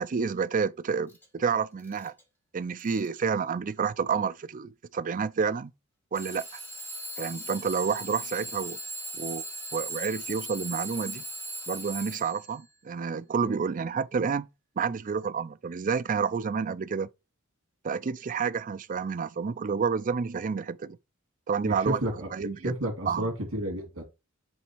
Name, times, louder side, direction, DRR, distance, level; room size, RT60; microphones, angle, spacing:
voice 1, 0.0-2.1 2.5-5.7 6.1-6.4 7.2-8.8 9.1-9.4 9.7-11.2 11.7-14.5 14.8-17.1 17.8-21.0 21.5-22.0 22.3-22.7 23.1-23.3, right 5 dB, 40° right, 0.4 m, -29 dB
Alarm / Clock, 1.1-1.2 1.8-2.2 2.8-3.2 4.1-4.2 6.1-12.5, right 1 dB, 10° left, 2.3 m, -38 dB
voice 2, 21.6-24.0, equal, 85° right, 2.4 m, -32 dB
7.0 x 3.5 x 4.5 m
head